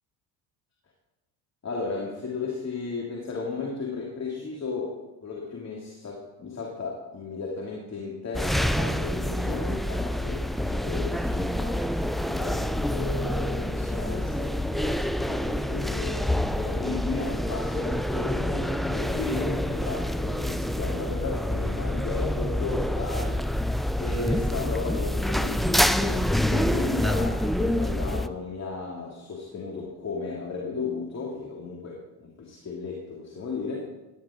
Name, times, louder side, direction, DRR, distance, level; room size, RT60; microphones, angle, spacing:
voice 1, 1.6-11.9 12.3-23.4 24.0-33.8, left 4 dB, 35° left, -2 dB, 2.9 m, -35 dB
sound 1, 8.3-28.3, left 1 dB, ahead, 0.4 m, -27 dB
16.0 x 11.0 x 3.9 m, 1.1 s
hypercardioid pair, 60°, 47 cm